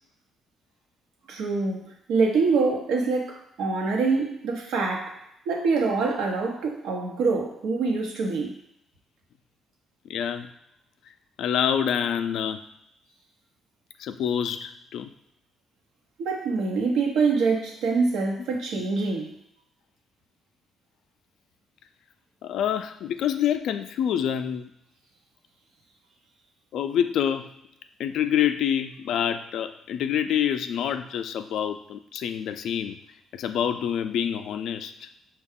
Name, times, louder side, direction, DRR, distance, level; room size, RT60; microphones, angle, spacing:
voice 1, 1.3-8.5 16.2-19.4, right 4 dB, 90° right, 0 dB, 0.8 m, -25 dB
voice 2, 10.1-10.5 11.1-12.6 14.0-15.1 22.4-24.7 26.7-27.5 28.0-33.0 33.3-35.1, left 9 dB, 75° left, 9 dB, 0.3 m, -27 dB
5.5 x 2.3 x 3.6 m, 0.77 s
cardioid pair, 90°, 0 cm